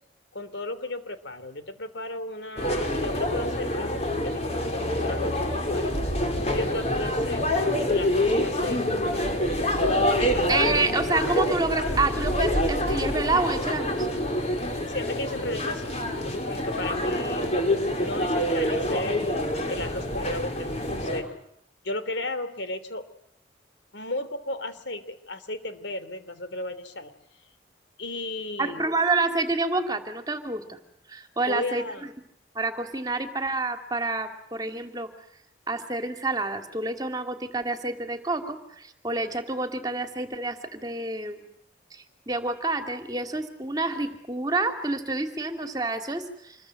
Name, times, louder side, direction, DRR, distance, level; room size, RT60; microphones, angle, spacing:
voice 1, 0.3-5.9 6.4-7.4 7.9-9.0 9.8-10.5 14.9-15.9 16.2-17.4 18.0-21.3 21.8-23.1 23.9-27.1 28.0-28.8 31.5-32.1, left 2 dB, 70° left, 11 dB, 3.1 m, -34 dB
sound 1, 2.6-21.2, left 1 dB, 35° left, 5.0 m, -26 dB
voice 2, 10.5-14.0 28.6-30.8 31.1-31.8 32.5-35.1 35.7-41.4 41.9-46.6, right 3 dB, 20° right, 6 dB, 2.8 m, -28 dB
27.5 x 22.5 x 7.8 m, 0.75 s
head